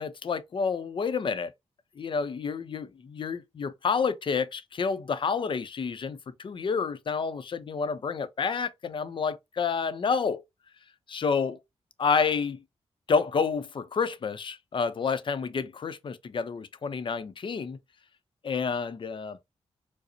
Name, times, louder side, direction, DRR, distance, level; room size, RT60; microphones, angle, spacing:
voice 1, 0.0-1.5 2.0-10.4 11.1-11.6 12.0-12.6 13.1-17.8 18.4-19.4, left 5 dB, 50° left, 0.5 m, -29 dB
4.8 x 2.0 x 2.6 m
cardioid pair, 95°, 11 cm